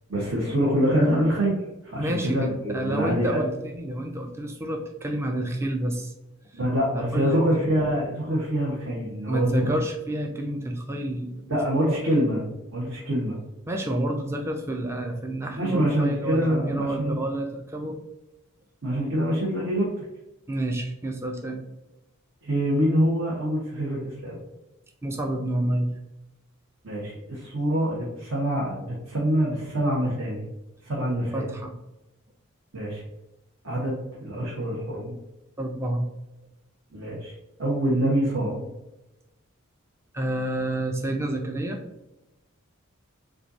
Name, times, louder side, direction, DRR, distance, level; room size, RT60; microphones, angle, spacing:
voice 1, 0.1-1.5 1.8-3.4 6.5-9.7 11.5-13.4 15.6-17.2 18.8-19.9 22.4-24.4 26.8-30.4 30.8-31.5 32.7-33.0 33.6-35.1 36.9-37.3 37.6-38.6, equal, 65° right, -5 dB, 1.3 m, -25 dB
voice 2, 2.0-2.5 2.7-6.1 6.9-7.4 9.3-11.6 11.9-12.0 13.7-18.0 20.5-21.6 25.0-25.9 31.3-31.7 35.6-36.1 40.1-41.8, right 1 dB, 10° right, 3 dB, 0.4 m, -29 dB
7.6 x 2.6 x 2.7 m, 0.97 s
head